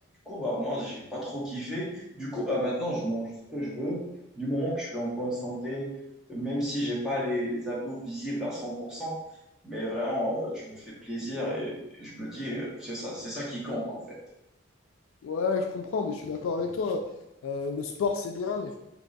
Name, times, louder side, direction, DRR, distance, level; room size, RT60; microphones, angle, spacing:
voice 1, 0.3-4.0 4.4-5.9 6.3-9.2 9.6-14.2, equal, 5° right, -6 dB, 0.8 m, -32 dB
voice 2, 15.2-17.0 17.4-18.8, left 4 dB, 85° left, 4 dB, 0.3 m, -30 dB
3.0 x 2.3 x 3.9 m, 0.88 s
head